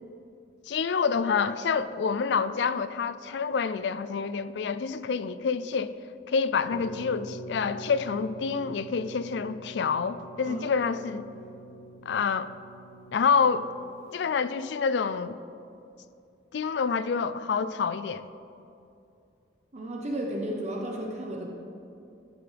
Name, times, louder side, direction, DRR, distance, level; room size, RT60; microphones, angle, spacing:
voice 1, 0.7-5.9 6.3-11.3 12.0-12.5 13.1-13.7 14.1-15.4 16.5-18.3, left 5 dB, 65° left, 0.4 m, -27 dB
sound 1, 6.7-14.2, right 1 dB, 40° left, 1.4 m, -45 dB
voice 2, 10.4-10.9 19.7-21.5, right 1 dB, 40° right, 1.0 m, -34 dB
14.5 x 7.8 x 3.4 m
head